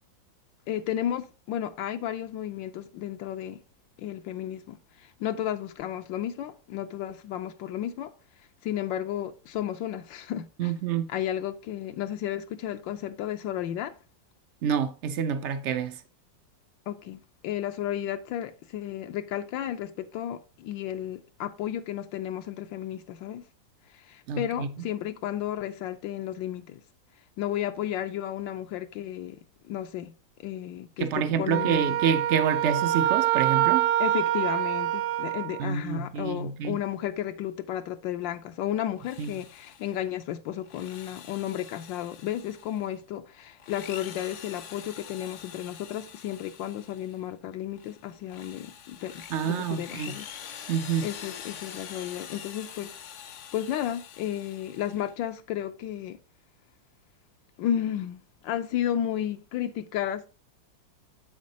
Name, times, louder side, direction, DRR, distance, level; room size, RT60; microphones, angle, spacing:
voice 1, 0.7-3.6 4.0-8.1 8.4-10.7 11.1-14.0 16.9-23.4 23.9-26.8 27.4-29.4 29.7-30.1 30.4-31.9 34.0-50.3 51.0-52.9 53.5-56.2 57.6-60.3, left 11 dB, 85° left, 1.3 m, -33 dB
voice 2, 10.6-11.1 14.6-16.0 24.3-24.7 31.0-33.9 35.6-36.7 39.2-39.3 49.3-50.2 50.7-51.1, right 7 dB, 85° right, 0.6 m, -27 dB
Wind instrument woodwind instrument, 31.5-35.6, right 13 dB, 70° right, 1.0 m, -25 dB
Drill, 38.9-40.0 40.6-42.9 43.5-47.2 47.7-55.2, left 8 dB, 65° left, 0.7 m, -45 dB
8.4 x 7.3 x 2.7 m
omnidirectional pair, 2.0 m